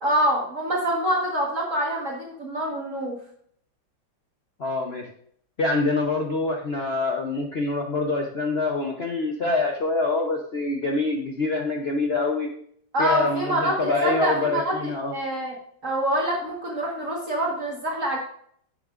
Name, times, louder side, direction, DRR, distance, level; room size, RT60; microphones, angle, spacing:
voice 1, 0.0-3.2 12.9-14.7 15.1-15.5 15.8-18.2, right 1 dB, 45° right, -2 dB, 1.7 m, -25 dB
voice 2, 4.6-5.0 5.6-12.5 13.0-15.1, left 3 dB, 50° left, 1 dB, 0.7 m, -25 dB
10.5 x 7.2 x 2.5 m, 0.63 s
omnidirectional pair, 2.1 m